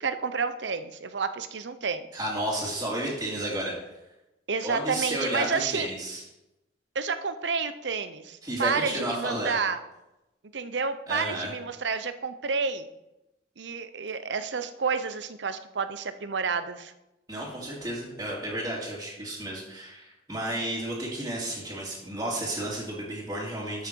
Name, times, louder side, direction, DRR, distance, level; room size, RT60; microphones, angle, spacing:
voice 1, 0.0-2.1 4.5-5.9 6.9-9.8 10.5-12.9 13.6-16.9, right 5 dB, 80° right, 11 dB, 0.7 m, -30 dB
voice 2, 2.1-4.0 4.6-6.2 8.4-9.6 11.1-11.5 17.3-23.9, right 1 dB, 20° right, -9 dB, 2.5 m, -32 dB
13.5 x 6.6 x 4.6 m, 0.95 s
head